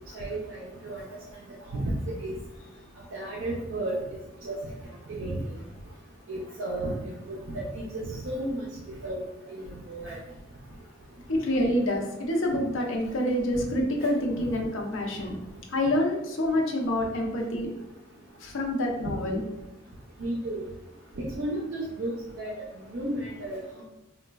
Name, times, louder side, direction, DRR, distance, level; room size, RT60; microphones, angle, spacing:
voice 1, 0.1-1.0 1.7-1.9 2.2-2.4 3.1-4.0 4.4-4.6 5.2-5.4 6.3-6.9 7.3-8.7 9.0-9.2 9.5-10.2 20.2-20.6 21.2-22.5 22.9-23.8, right 1 dB, 65° right, -5 dB, 0.5 m, -33 dB
voice 2, 11.3-15.4 15.7-17.7 18.4-19.4, left 1 dB, 75° left, 1 dB, 0.5 m, -27 dB
3.9 x 2.2 x 2.2 m, 0.96 s
head